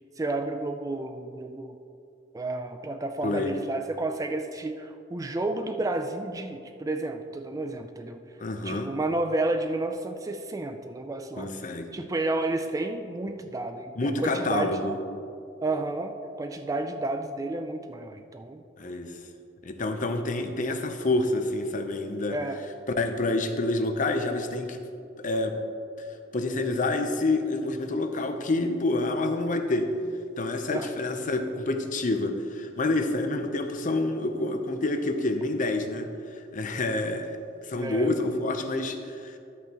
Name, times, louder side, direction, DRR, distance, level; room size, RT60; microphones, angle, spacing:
voice 1, 0.2-1.8 2.3-8.2 8.6-11.5 11.9-14.9 15.6-18.6 22.3-22.6 30.7-30.9 37.7-38.1, right 2 dB, 20° right, 6 dB, 0.3 m, -31 dB
voice 2, 3.2-3.6 8.4-8.9 11.4-11.9 14.0-14.9 18.8-19.1 19.6-22.4 23.0-24.8 25.2-25.6 26.0-26.1 26.3-29.9 30.4-36.1 36.5-37.3 37.6-39.4, left 2 dB, 45° left, 6 dB, 0.6 m, -28 dB
11.5 x 8.3 x 2.9 m, 2.5 s
head